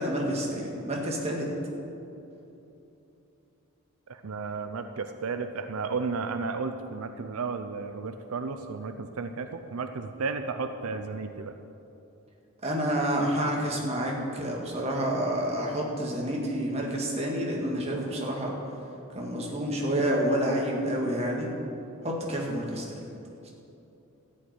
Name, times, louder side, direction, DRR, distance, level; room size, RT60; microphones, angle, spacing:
voice 1, 0.0-1.5 12.6-18.5 19.1-21.5 22.0-23.0, right 1 dB, 30° right, -1 dB, 1.9 m, -29 dB
voice 2, 4.1-11.6, right 4 dB, 80° right, 8 dB, 0.6 m, -33 dB
13.5 x 5.5 x 9.5 m, 2.8 s
head